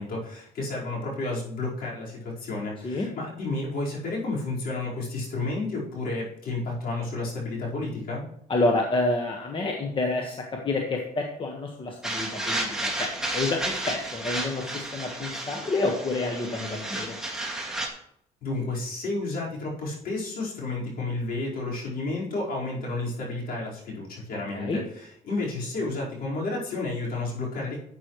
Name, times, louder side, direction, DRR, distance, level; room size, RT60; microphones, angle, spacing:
voice 1, 0.0-8.2 18.4-27.8, left 2 dB, 60° left, -5 dB, 4.6 m, -31 dB
voice 2, 8.5-17.2 24.5-24.8, left 2 dB, 30° left, 1 dB, 1.4 m, -28 dB
sound 1, 12.0-17.9, right 1 dB, 5° right, 2.1 m, -32 dB
11.5 x 8.4 x 3.2 m, 0.71 s
cardioid pair, 110°, 17 cm